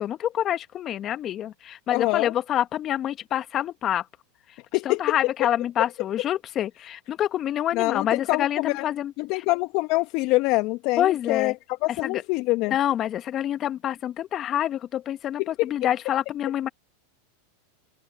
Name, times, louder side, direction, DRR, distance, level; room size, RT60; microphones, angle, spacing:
voice 1, 0.0-4.0 4.8-9.4 11.0-11.5 12.0-12.2 12.7-16.7, left 11 dB, 35° left, 1.5 m, -27 dB
voice 2, 1.9-2.3 4.7-5.0 7.7-8.9 9.2-12.7 15.4-15.5, left 22 dB, 50° left, 1.0 m, -25 dB
open air
hypercardioid pair, 105°, 0 cm